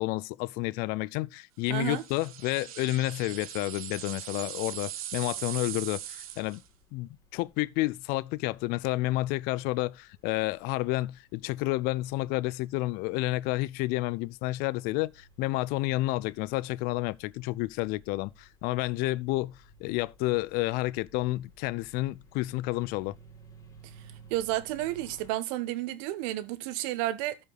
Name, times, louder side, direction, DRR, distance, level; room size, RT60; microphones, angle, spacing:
voice 1, 0.0-6.6 6.9-23.2, left 19 dB, 60° left, 0.5 m, -30 dB
voice 2, 1.7-2.0 24.3-27.4, right 14 dB, 70° right, 1.2 m, -31 dB
sound 1, 1.8-6.7, right 11 dB, 90° right, 1.1 m, -40 dB
sound 2, 5.5-25.3, right 3 dB, 20° left, 4.6 m, -58 dB
13.0 x 5.5 x 4.1 m
supercardioid pair, 100°, 18 cm